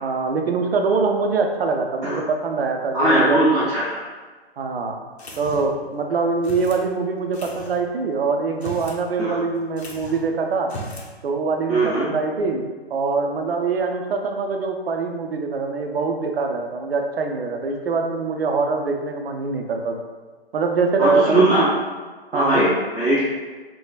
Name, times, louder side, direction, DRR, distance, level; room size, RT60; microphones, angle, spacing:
voice 1, 0.0-3.4 4.6-5.0 5.4-10.7 11.2-20.0 20.5-21.7 22.3-22.6, right 4 dB, 70° right, 3 dB, 0.5 m, -23 dB
voice 2, 2.9-4.0 9.2-9.4 11.7-12.1 21.0-21.6 22.3-23.2, right 1 dB, 5° left, -17 dB, 0.7 m, -19 dB
sound 1, 5.2-5.8 6.4-6.8 7.3-7.8 8.5-9.0 9.3-9.4 9.8-10.3 10.6-11.1, equal, 75° left, 0.7 m, -36 dB
3.3 x 2.1 x 2.3 m, 1.3 s
figure-of-eight pair, 130°, 32 cm